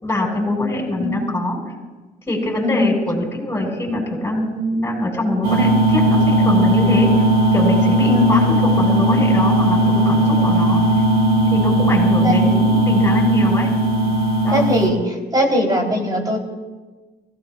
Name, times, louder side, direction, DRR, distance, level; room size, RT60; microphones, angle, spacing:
voice 1, 0.0-1.6 2.3-7.1 7.5-10.8 11.5-13.7 14.4-14.7, left 1 dB, 15° left, -1 dB, 5.7 m, -23 dB
voice 2, 2.6-3.0 8.1-8.6 12.2-12.6 14.5-16.4, left 1 dB, 25° right, 0 dB, 3.7 m, -20 dB
sound 1, 5.4-14.9, right 1 dB, 65° right, 4.1 m, -16 dB
24.0 x 17.0 x 2.5 m, 1.3 s
cardioid pair, 90°, 17 cm